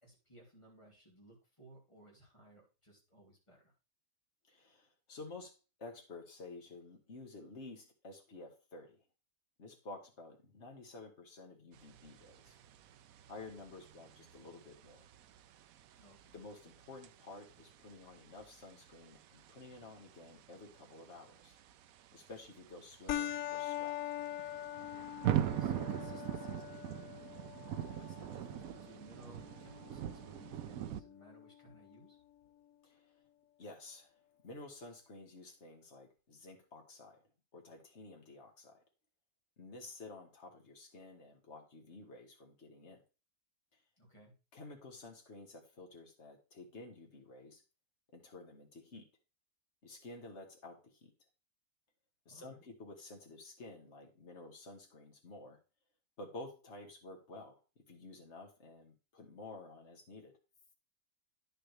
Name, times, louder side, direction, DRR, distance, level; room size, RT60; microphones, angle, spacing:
voice 1, 0.0-3.7 16.0-16.3 25.3-27.0 27.8-32.2 44.0-44.4 52.3-52.6, right 1 dB, 20° left, -2 dB, 3.3 m, -60 dB
voice 2, 4.5-9.0 9.6-12.6 13.3-15.1 16.3-21.5 22.1-24.0 27.5-27.7 32.8-33.1 33.6-34.1 34.4-37.2 37.5-38.8 39.6-43.0 44.5-47.6 48.1-49.1 49.8-51.1 52.3-55.6 56.2-60.4, left 2 dB, 50° left, 2 dB, 2.1 m, -52 dB
sound 1, 11.7-31.0, right 11 dB, 75° right, 1.0 m, -43 dB
sound 2, 23.1-32.1, left 12 dB, 70° left, 0.9 m, -44 dB
10.0 x 7.1 x 3.4 m, 0.31 s
omnidirectional pair, 1.5 m